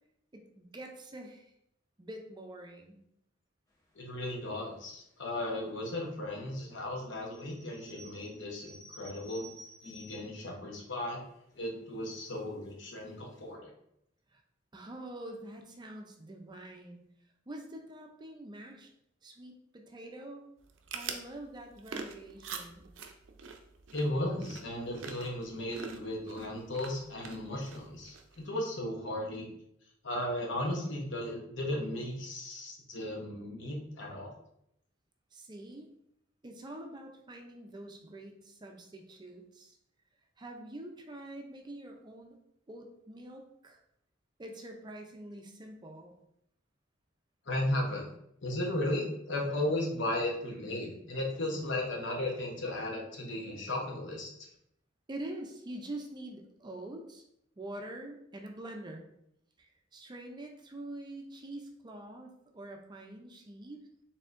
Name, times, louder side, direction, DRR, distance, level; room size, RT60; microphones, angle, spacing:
voice 1, 0.3-1.5 2.0-3.0 14.3-14.4 14.7-17.0 17.5-18.9 19.2-20.4 20.9-22.8 35.3-35.9 36.4-39.8 40.4-42.4 42.7-43.8 44.4-46.1 55.1-57.2 57.6-59.0 59.6-63.8, right 1 dB, 25° right, 3 dB, 0.5 m, -45 dB
voice 2, 3.9-9.5 9.8-11.2 11.5-13.7 23.9-29.5 30.0-34.3 47.5-48.1 48.4-54.5, left 1 dB, 70° left, 0 dB, 1.0 m, -35 dB
sound 1, 7.2-10.4 11.0-11.1 11.3-11.7 12.3-12.7 13.1-13.2 13.4-13.5, equal, 20° left, 1.1 m, -53 dB
sound 2, 20.6-28.5, right 5 dB, 75° right, 0.5 m, -45 dB
4.3 x 3.6 x 2.5 m, 0.75 s
head